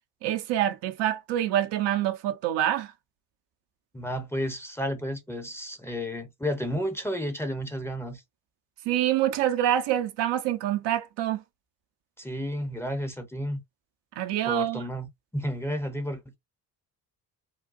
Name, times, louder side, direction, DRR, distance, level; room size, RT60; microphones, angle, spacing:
voice 1, 0.2-2.9 8.9-11.4 14.2-14.8, right 12 dB, 60° right, 0.7 m, -26 dB
voice 2, 3.9-8.2 12.2-13.6 14.5-16.4, equal, 5° left, 0.8 m, -32 dB
3.7 x 2.2 x 2.6 m
hypercardioid pair, 55°, 47 cm